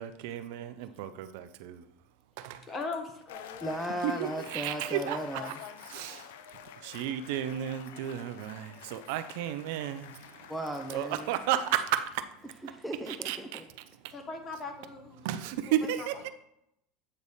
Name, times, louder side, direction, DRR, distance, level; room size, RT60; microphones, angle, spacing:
voice 1, 0.0-1.8 2.4-2.6 4.0-5.5 5.9-6.3 6.8-10.1 10.9-12.3 13.1-13.6 15.2-16.3, right 11 dB, 75° right, 0.4 m, -33 dB
voice 2, 2.7-3.8 14.1-15.2 15.7-16.1, left 3 dB, 30° left, 1.1 m, -40 dB
sound 1, 3.3-12.0, left 10 dB, 85° left, 0.4 m, -48 dB
voice 3, 3.6-5.5 10.5-11.3 12.6-13.6, right 1 dB, ahead, 0.5 m, -36 dB
8.3 x 3.3 x 4.1 m
supercardioid pair, 120°, 0 cm